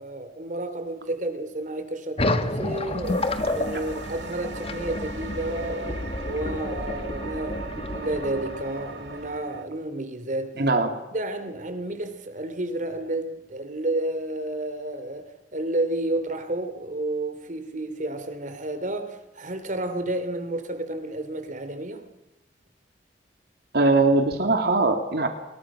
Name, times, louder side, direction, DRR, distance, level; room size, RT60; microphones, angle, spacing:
voice 1, 0.0-3.3 3.5-10.6 11.1-22.0, right 1 dB, 45° right, 3.1 m, -31 dB
sound 1, 2.2-9.4, left 2 dB, 35° left, 1.6 m, -30 dB
sound 2, 3.0-9.7, right 4 dB, 85° right, 2.2 m, -40 dB
voice 2, 10.6-11.0 23.7-25.3, right 2 dB, 65° right, 2.7 m, -21 dB
29.0 x 22.0 x 6.2 m
head